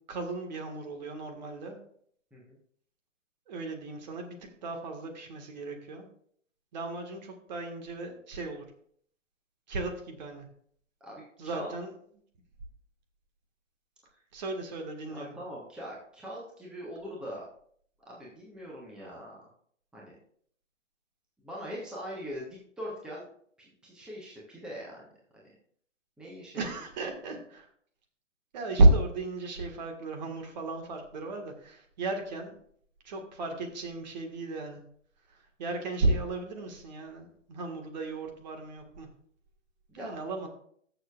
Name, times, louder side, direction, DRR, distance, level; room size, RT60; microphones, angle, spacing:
voice 1, 0.1-1.8 3.5-6.1 6.7-8.6 9.7-10.5 11.4-11.9 14.3-15.3 26.5-27.7 28.5-32.6 33.0-34.8 35.3-39.1 39.9-40.5, right 2 dB, 35° right, 3 dB, 1.7 m, -32 dB
voice 2, 11.0-11.7 15.1-17.4 18.1-19.4 19.9-20.1 21.4-23.3 23.6-25.0 25.3-25.4 26.2-26.7 39.9-40.1, equal, ahead, -5 dB, 1.2 m, -42 dB
20.5 x 6.8 x 2.4 m, 0.62 s
figure-of-eight pair, 130°, 38 cm